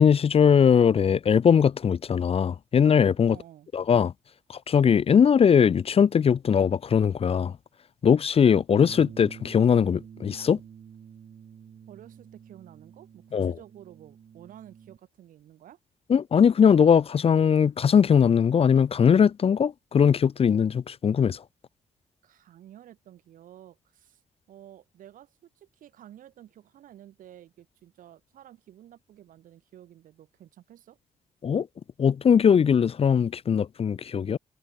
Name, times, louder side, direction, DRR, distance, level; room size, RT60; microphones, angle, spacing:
voice 1, 0.0-3.4 3.7-4.1 4.7-7.5 8.0-10.6 13.3-13.5 16.1-21.4 31.4-31.7 32.0-34.4, left 7 dB, 45° left, 0.5 m, -20 dB
voice 2, 3.2-3.7 11.9-15.8 22.2-24.2 24.5-31.0, right 11 dB, 70° right, 2.9 m, -51 dB
Bass guitar, 8.7-15.0, right 8 dB, 55° right, 1.2 m, -47 dB
hypercardioid pair, 45°, 14 cm